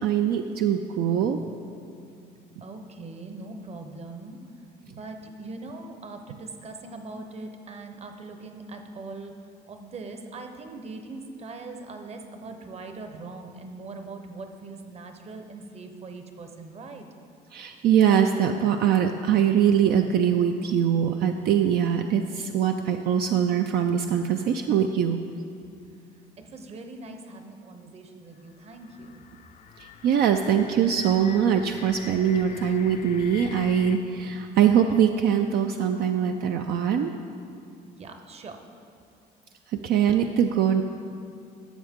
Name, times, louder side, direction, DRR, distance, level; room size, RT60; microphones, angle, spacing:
voice 1, 0.0-1.4 17.5-25.2 29.8-37.1 39.7-40.8, right 8 dB, 65° right, 5 dB, 0.4 m, -22 dB
voice 2, 2.6-4.4 4.9-9.4 9.7-17.1 26.4-29.2 38.0-38.6, right 3 dB, 40° right, 6 dB, 0.8 m, -41 dB
sound 1, 28.3-34.0, left 8 dB, 45° left, 0.5 m, -45 dB
12.5 x 7.2 x 3.6 m, 2.5 s
cardioid pair, 110°, 17 cm